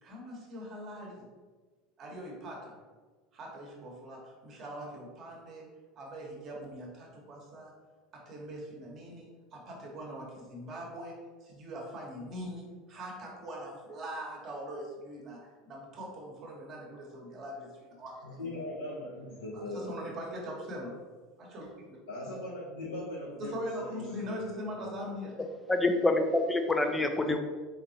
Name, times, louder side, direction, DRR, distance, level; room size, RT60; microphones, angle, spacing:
voice 1, 0.0-1.3 2.0-2.8 3.3-5.7 5.9-7.7 8.1-18.3 19.7-21.0 21.4-22.0 23.4-25.3, equal, 45° right, -2 dB, 1.3 m, -42 dB
voice 2, 18.2-19.9 22.1-25.0, left 1 dB, 85° left, -5 dB, 0.7 m, -40 dB
voice 3, 25.7-27.4, left 2 dB, 15° left, 5 dB, 0.5 m, -26 dB
3.9 x 3.9 x 2.8 m, 1.4 s
hypercardioid pair, 80°, 0 cm